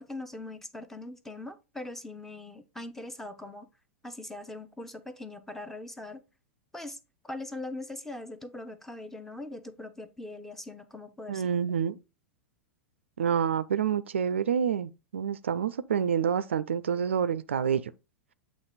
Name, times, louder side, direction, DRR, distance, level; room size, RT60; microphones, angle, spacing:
voice 1, 0.0-3.7 4.0-6.2 6.7-7.0 7.2-11.5, left 2 dB, 5° left, 0.7 m, -41 dB
voice 2, 11.3-12.0 13.2-17.9, right 7 dB, 65° right, 0.4 m, -28 dB
8.1 x 3.0 x 4.1 m
figure-of-eight pair, 95°, 7 cm